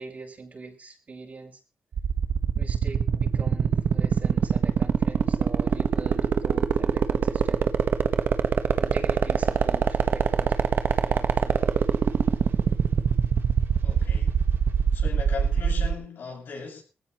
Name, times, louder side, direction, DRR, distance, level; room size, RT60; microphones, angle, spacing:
voice 1, 0.0-1.6 2.5-7.7 8.8-10.7 11.0-11.8, right 4 dB, 45° right, 5.6 m, -42 dB
sound 1, 1.9-15.9, right 7 dB, 70° right, 1.2 m, -22 dB
voice 2, 13.8-14.4 14.9-16.8, left 5 dB, 75° left, 6.6 m, -38 dB
21.5 x 15.5 x 3.1 m
cardioid pair, 80°, 4 cm